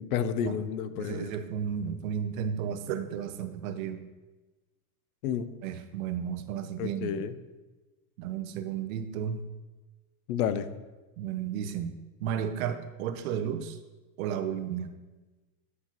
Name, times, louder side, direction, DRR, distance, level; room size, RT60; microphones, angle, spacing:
voice 1, 0.0-1.3 5.2-5.5 6.8-7.3 10.3-10.7, left 8 dB, 75° left, 12 dB, 0.7 m, -30 dB
voice 2, 0.9-4.0 5.6-7.1 8.2-9.4 11.2-13.8 14.2-15.0, right 8 dB, 65° right, 9 dB, 0.8 m, -33 dB
9.5 x 5.6 x 3.0 m, 1.2 s
supercardioid pair, 145°, 44 cm